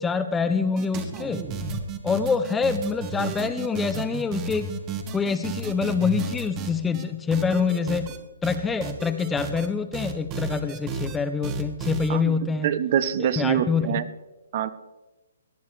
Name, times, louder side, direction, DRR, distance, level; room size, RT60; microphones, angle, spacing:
voice 1, 0.0-1.5 2.0-4.7 5.1-8.1 8.4-12.7 13.2-14.0, left 5 dB, 5° left, 10 dB, 0.4 m, -26 dB
sound 1, 0.8-7.0 7.3-8.2 8.4-9.7 9.9-11.2 11.4-12.1, right 5 dB, 20° right, 1.1 m, -32 dB
voice 2, 12.6-14.1 14.5-14.7, right 9 dB, 40° right, 15 dB, 0.6 m, -24 dB
18.0 x 11.0 x 3.2 m, 1.1 s
hypercardioid pair, 165°, 0 cm